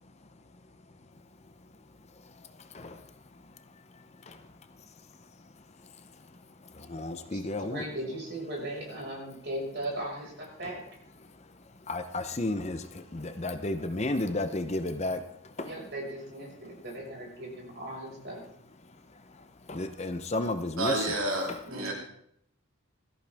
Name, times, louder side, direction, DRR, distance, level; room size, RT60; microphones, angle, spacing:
voice 1, 6.8-7.8 11.9-15.2 15.6-15.7 19.7-21.0, left 2 dB, 30° left, 9 dB, 0.7 m, -32 dB
voice 2, 7.3-10.8 15.6-18.4 21.7-21.9, right 1 dB, 50° right, -2 dB, 5.5 m, -38 dB
voice 3, 20.8-21.9, right 1 dB, 80° right, 0 dB, 2.8 m, -30 dB
17.0 x 13.5 x 3.5 m, 0.72 s
head